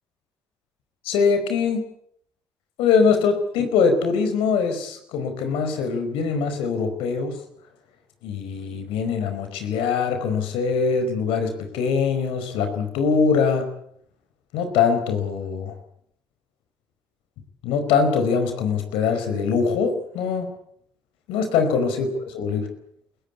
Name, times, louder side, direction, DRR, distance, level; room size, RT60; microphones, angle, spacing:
voice 1, 1.0-1.8 2.8-7.4 8.2-13.7 14.5-15.7 17.6-20.5 21.3-22.1 22.3-22.7, left 5 dB, 85° left, 7 dB, 4.9 m, -22 dB
29.0 x 15.5 x 8.5 m, 0.69 s
cardioid pair, 85°, 9 cm